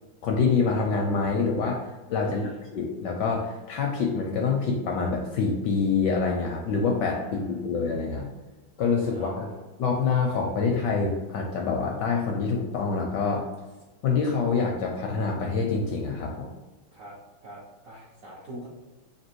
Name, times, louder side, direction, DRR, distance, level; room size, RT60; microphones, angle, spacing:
voice 1, 0.2-1.8 2.1-8.3 8.8-9.5 9.8-13.5 14.0-16.5, left 4 dB, 75° left, 0 dB, 1.0 m, -26 dB
voice 2, 2.2-2.6 7.2-7.4 9.1-9.6 16.9-17.1 17.4-18.7, right 1 dB, 65° right, -5 dB, 0.8 m, -43 dB
3.4 x 2.8 x 4.4 m, 1.2 s
omnidirectional pair, 2.3 m